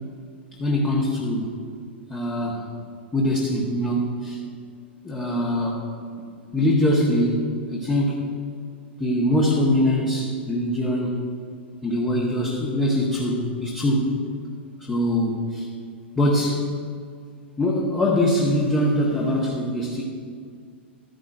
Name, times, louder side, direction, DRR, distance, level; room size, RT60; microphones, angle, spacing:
voice 1, 0.6-1.5 2.1-2.7 3.1-4.4 5.0-5.8 6.5-7.4 7.7-8.4 9.0-11.3 11.8-14.1 14.8-15.7 16.2-16.7 17.6-20.0, left 1 dB, 15° left, -4 dB, 1.4 m, -23 dB
12.5 x 10.5 x 2.6 m, 2.1 s
figure-of-eight pair, 100°, 6 cm